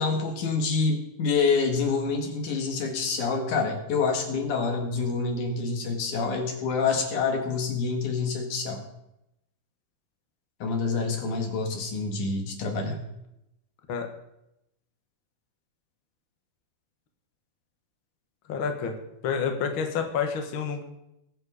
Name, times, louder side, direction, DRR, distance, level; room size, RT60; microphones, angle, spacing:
voice 1, 0.0-8.8 10.6-13.0, left 4 dB, 70° left, 3 dB, 3.3 m, -27 dB
voice 2, 18.5-19.0 19.2-20.8, left 6 dB, 50° left, 4 dB, 1.6 m, -28 dB
20.5 x 7.7 x 4.9 m, 0.85 s
omnidirectional pair, 3.7 m